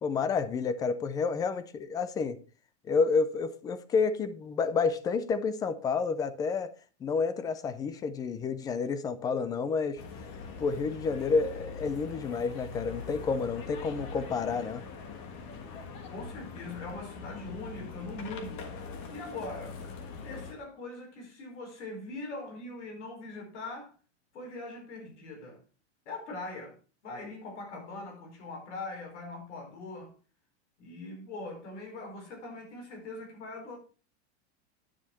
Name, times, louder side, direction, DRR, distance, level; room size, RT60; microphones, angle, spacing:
voice 1, 0.0-2.4 2.8-6.7 7.0-10.0 10.6-14.8, left 5 dB, 10° left, 0.4 m, -29 dB
sound 1, 10.0-20.5, left 4 dB, 35° left, 1.5 m, -42 dB
voice 2, 16.1-18.7 19.1-19.8 20.2-23.9 24.3-25.6 26.0-26.8 27.0-30.1 30.8-33.8, left 2 dB, 85° left, 4.7 m, -41 dB
9.8 x 7.1 x 4.4 m
supercardioid pair, 165°, 34 cm